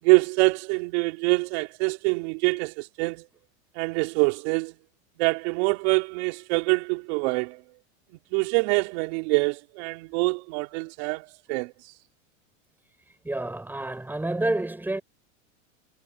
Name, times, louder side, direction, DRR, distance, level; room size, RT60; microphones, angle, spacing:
voice 1, 0.0-3.3 3.7-4.7 5.2-7.6 8.3-11.7, right 30 dB, 55° right, 5.1 m, -25 dB
voice 2, 13.2-15.0, right 2 dB, 5° right, 7.3 m, -28 dB
supercardioid pair, 140°, 40 cm